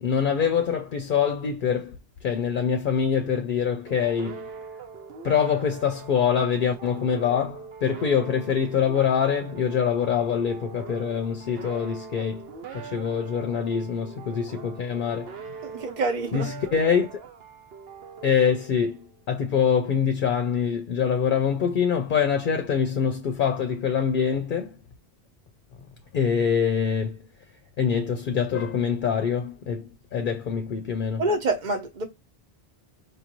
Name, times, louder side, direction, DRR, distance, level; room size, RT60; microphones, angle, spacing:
voice 1, 0.0-4.5 5.2-12.5 12.7-15.3 16.3-17.2 18.2-24.8 26.1-27.3 27.8-31.2, left 7 dB, 60° left, 0.7 m, -24 dB
sound 1, 3.9-19.2, right 6 dB, 70° right, 1.0 m, -42 dB
voice 2, 15.6-16.5 31.2-32.1, right 2 dB, 50° right, 1.0 m, -26 dB
5.1 x 2.5 x 3.0 m
omnidirectional pair, 1.0 m